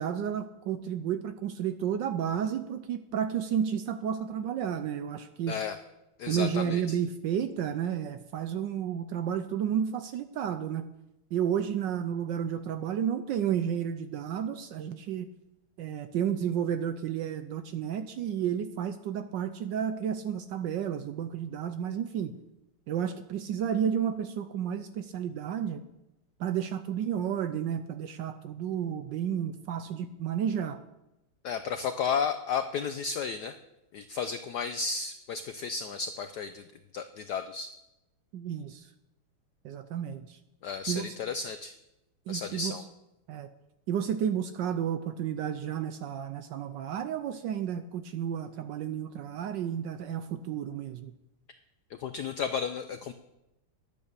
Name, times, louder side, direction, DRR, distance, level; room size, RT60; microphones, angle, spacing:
voice 1, 0.0-5.6 6.3-10.9 11.3-15.3 15.8-22.3 22.9-25.8 26.4-30.8 38.3-38.9 39.6-40.4 40.9-41.1 42.3-42.8 43.3-43.5 43.9-51.1, right 9 dB, 70° right, 10 dB, 1.1 m, -31 dB
voice 2, 6.2-7.0 31.4-33.5 33.9-36.6 36.9-37.7 40.6-41.7 42.3-42.8 52.0-53.1, left 6 dB, 80° left, 10 dB, 0.9 m, -33 dB
10.5 x 8.8 x 6.7 m, 0.93 s
omnidirectional pair, 2.4 m